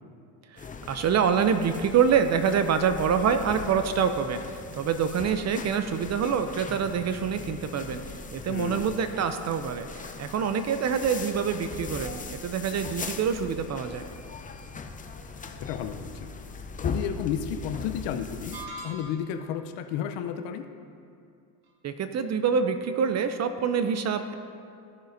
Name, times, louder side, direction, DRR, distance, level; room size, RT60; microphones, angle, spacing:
voice 1, 0.5-8.0 8.3-14.0 21.8-24.3, right 7 dB, 35° right, 9 dB, 0.6 m, -26 dB
sound 1, 0.6-18.7, left 4 dB, 20° left, 0.6 m, -39 dB
voice 2, 8.5-8.8 15.6-16.3 16.8-18.6 18.8-20.7, left 8 dB, 65° left, 7 dB, 0.8 m, -32 dB
sound 2, 18.5-19.5, right 1 dB, 50° right, 1.7 m, -41 dB
16.0 x 6.3 x 2.7 m, 2.4 s
supercardioid pair, 90°, 46 cm